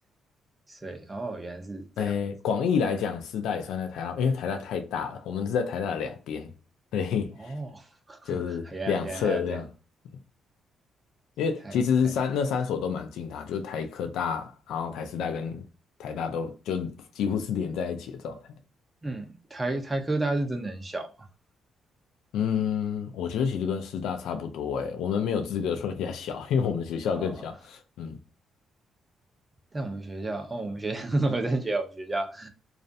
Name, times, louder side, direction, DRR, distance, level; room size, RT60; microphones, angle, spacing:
voice 1, 0.7-2.1 7.4-9.6 11.6-11.8 12.0-12.1 19.0-21.3 27.2-27.4 29.7-32.5, right 2 dB, 20° right, 0.6 m, -32 dB
voice 2, 2.0-6.5 6.9-7.5 8.3-9.7 11.4-15.6 16.0-18.4 22.3-28.2, left 6 dB, 85° left, 0.3 m, -29 dB
2.4 x 2.0 x 2.5 m
cardioid pair, 90°, 0 cm